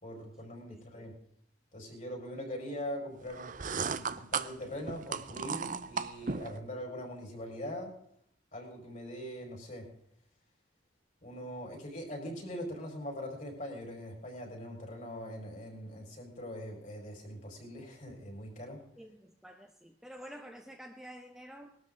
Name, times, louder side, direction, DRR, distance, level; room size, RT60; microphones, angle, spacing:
voice 1, 0.0-1.2 1.7-7.9 8.5-9.9 11.2-18.8, equal, 45° left, 5.2 m, -42 dB
voice 2, 0.7-1.1 19.0-21.8, equal, ahead, 0.9 m, -50 dB
sound 1, 3.3-6.6, right 5 dB, 45° right, 0.7 m, -36 dB
20.5 x 12.5 x 4.0 m
head